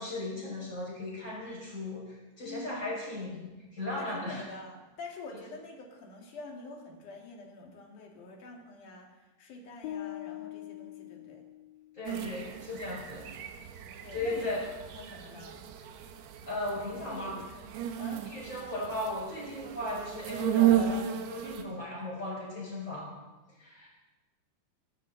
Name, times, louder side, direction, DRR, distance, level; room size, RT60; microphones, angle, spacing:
voice 1, 0.0-4.4 11.9-13.2 14.1-14.7 16.5-17.4 18.3-23.1 23.6-23.9, left 2 dB, 15° left, -5 dB, 6.2 m, -36 dB
voice 2, 2.4-2.8 4.0-11.4 13.0-13.1 14.0-14.5 14.9-15.7 17.1-18.3, left 3 dB, 55° left, 1 dB, 3.6 m, -46 dB
sound 1, 9.8-12.0, left 13 dB, 70° left, 2.3 m, -42 dB
sound 2, 12.1-21.6, right 11 dB, 80° right, 3.2 m, -33 dB
26.0 x 12.5 x 4.0 m, 1.1 s
omnidirectional pair, 4.7 m